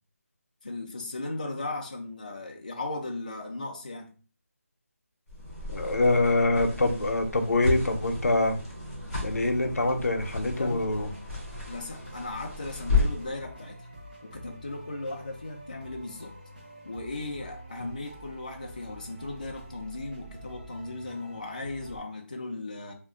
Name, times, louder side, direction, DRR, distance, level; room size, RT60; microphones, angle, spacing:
voice 1, 0.6-4.1 10.6-10.9 11.7-13.9 14.2-16.3 16.8-22.9, left 2 dB, 35° left, 2 dB, 0.4 m, -37 dB
sound 1, 5.3-13.3, left 3 dB, ahead, 0.7 m, -33 dB
voice 2, 5.7-8.6 9.2-11.1, left 2 dB, 90° left, 6 dB, 0.6 m, -25 dB
sound 2, 9.6-22.0, equal, 35° right, 0.8 m, -47 dB
2.4 x 2.1 x 3.6 m, 0.38 s
figure-of-eight pair, 180°, 8 cm